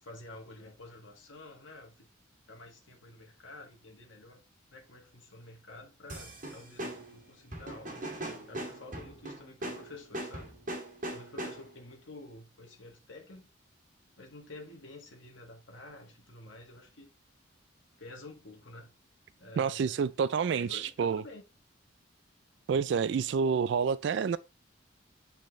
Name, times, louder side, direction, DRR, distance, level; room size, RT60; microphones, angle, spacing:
voice 1, 0.0-2.1 2.5-4.4 4.7-8.0 8.5-10.5 11.1-13.5 14.2-17.1 18.0-18.9 19.4-20.1 20.5-21.4, left 2 dB, 75° left, 1.6 m, -50 dB
sound 1, 6.1-11.9, right 1 dB, 40° right, 2.1 m, -40 dB
voice 2, 19.6-21.2 22.7-24.4, right 6 dB, 60° right, 0.3 m, -28 dB
8.3 x 4.3 x 3.1 m
head